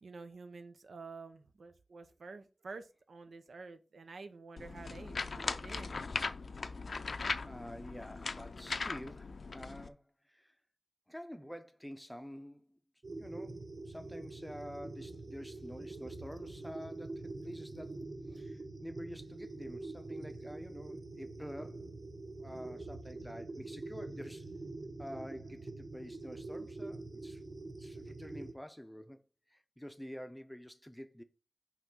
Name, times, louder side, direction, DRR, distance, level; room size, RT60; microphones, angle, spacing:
voice 1, 0.0-6.0, right 4 dB, 85° right, 0.6 m, -49 dB
sound 1, 4.6-9.9, left 4 dB, 70° left, 0.4 m, -39 dB
voice 2, 7.4-10.5 11.1-12.8 13.2-21.9 22.4-24.5 25.0-27.4 27.8-29.2 29.5-31.2, equal, 5° left, 0.6 m, -48 dB
sound 2, 13.0-28.5, right 2 dB, 40° right, 0.9 m, -45 dB
5.7 x 3.1 x 5.3 m
wide cardioid pair, 85°, 0 cm